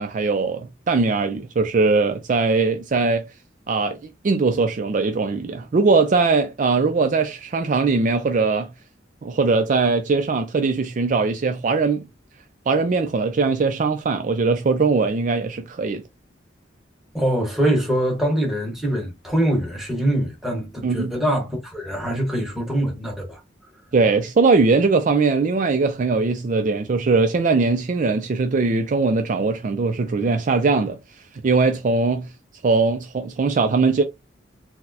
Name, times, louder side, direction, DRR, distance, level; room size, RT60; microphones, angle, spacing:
voice 1, 0.0-3.2 3.7-4.0 4.2-8.7 9.2-12.0 12.7-16.0 20.8-21.1 23.9-31.0 31.4-32.3 32.6-34.0, right 4 dB, 45° right, 0.4 m, -20 dB
voice 2, 17.1-23.4, right 1 dB, ahead, 1.2 m, -23 dB
4.3 x 2.1 x 2.7 m
head